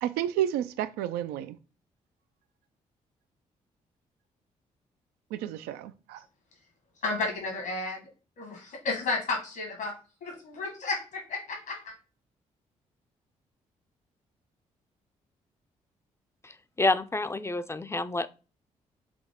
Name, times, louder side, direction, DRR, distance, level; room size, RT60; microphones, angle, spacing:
voice 1, 0.0-1.6 5.3-6.2, right 11 dB, 80° right, 0.4 m, -31 dB
voice 2, 7.0-8.0 8.4-9.9 10.2-11.9, left 3 dB, 70° left, 1.5 m, -32 dB
voice 3, 16.8-18.3, left 2 dB, 15° left, 0.4 m, -28 dB
5.1 x 2.8 x 3.6 m
hypercardioid pair, 45°, 16 cm